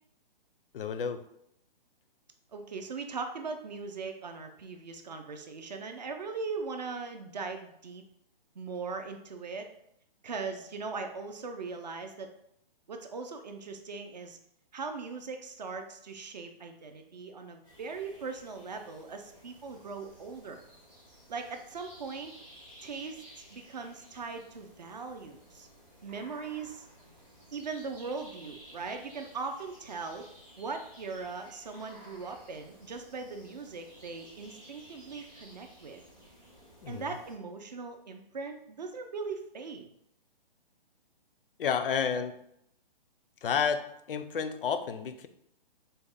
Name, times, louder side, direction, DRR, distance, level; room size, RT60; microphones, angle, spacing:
voice 1, 0.7-1.2 36.8-37.1 41.6-42.4 43.4-45.3, left 6 dB, 70° left, 10 dB, 0.4 m, -31 dB
voice 2, 2.5-8.0 8.6-9.7 10.2-12.3 12.9-14.4 14.7-20.6 21.3-22.3 22.8-23.2 23.5-25.7 26.0-26.9 27.5-30.3 30.6-36.0 36.9-39.9, right 4 dB, 50° right, 6 dB, 0.4 m, -39 dB
sound 1, 17.6-37.3, equal, ahead, 0.6 m, -55 dB
4.1 x 2.1 x 3.4 m, 0.75 s
hypercardioid pair, 175°, 29 cm